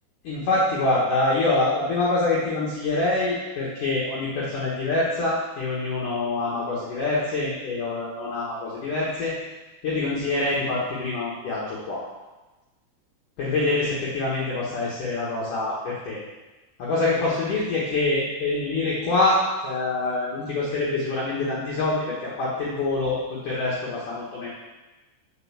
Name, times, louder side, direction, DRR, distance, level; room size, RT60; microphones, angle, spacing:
voice 1, 0.2-9.3 9.8-12.0 13.4-16.2 16.8-24.5, left 2 dB, 55° left, -6 dB, 2.6 m, -25 dB
8.1 x 6.3 x 7.4 m, 1.1 s
omnidirectional pair, 5.2 m